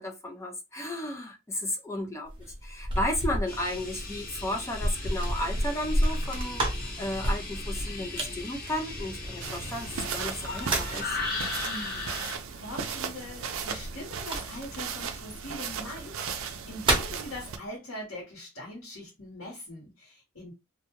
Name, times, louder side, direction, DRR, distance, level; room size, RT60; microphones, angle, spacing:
voice 1, 0.0-11.2, left 1 dB, 15° left, 0.4 m, -34 dB
sound 1, 2.3-9.7 10.3-11.1 13.5-14.8 15.8-15.9 16.4-17.2, right 1 dB, 25° right, 0.8 m, -31 dB
sound 2, 3.5-12.3, left 3 dB, 45° left, 0.9 m, -37 dB
sound 3, 9.4-17.6, right 6 dB, 75° right, 0.4 m, -36 dB
voice 2, 11.6-20.5, left 1 dB, 75° left, 1.3 m, -42 dB
2.5 x 2.2 x 3.0 m
head